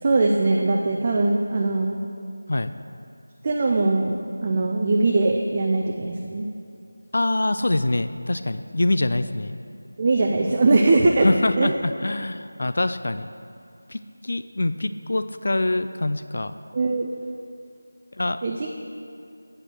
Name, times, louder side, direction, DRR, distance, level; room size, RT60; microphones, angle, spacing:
voice 1, 0.0-2.0 3.4-6.5 10.0-11.3 11.6-11.7 16.7-17.1 18.4-18.7, right 3 dB, 30° right, 0 dB, 0.4 m, -21 dB
voice 2, 7.1-9.6 11.2-13.3 13.9-16.6 18.1-18.4, left 2 dB, 60° left, 11 dB, 0.3 m, -24 dB
8.5 x 5.1 x 6.0 m, 2.5 s
figure-of-eight pair, 170°, 0 cm